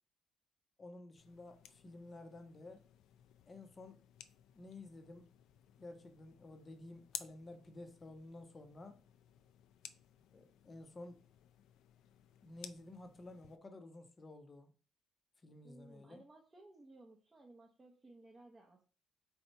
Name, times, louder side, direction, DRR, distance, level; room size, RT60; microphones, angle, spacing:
voice 1, 0.8-2.8 3.5-4.0 4.5-5.3 5.8-9.0 10.3-11.2 12.4-14.7 15.4-16.2, left 2 dB, 25° left, 0.6 m, -52 dB
sound 1, 1.2-13.6, left 10 dB, 85° left, 0.4 m, -56 dB
voice 2, 15.6-18.8, right 2 dB, 15° right, 0.7 m, -59 dB
3.9 x 2.8 x 4.4 m
cardioid pair, 140°, 0 cm